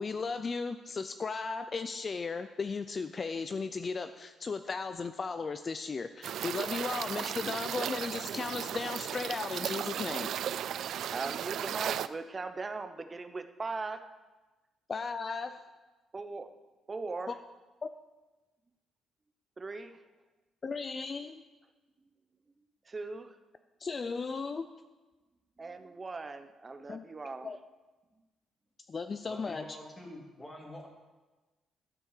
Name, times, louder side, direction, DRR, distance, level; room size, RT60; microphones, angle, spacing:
voice 1, 0.0-10.3 14.9-15.7 17.3-17.4 17.8-17.9 20.6-21.4 23.8-24.7 26.9-27.1 27.4-27.6 28.9-29.8, left 4 dB, 30° left, 10 dB, 0.4 m, -36 dB
sound 1, 6.2-12.1, right 10 dB, 65° right, 0.3 m, -35 dB
voice 2, 11.1-14.0 16.1-16.5 16.9-17.4 19.6-20.0 22.9-23.4 25.6-27.5, right 3 dB, 25° right, 9 dB, 0.8 m, -39 dB
voice 3, 29.2-30.9, left 1 dB, 15° left, 0 dB, 2.4 m, -46 dB
12.5 x 7.5 x 6.6 m, 1.2 s
cardioid pair, 135°, 0 cm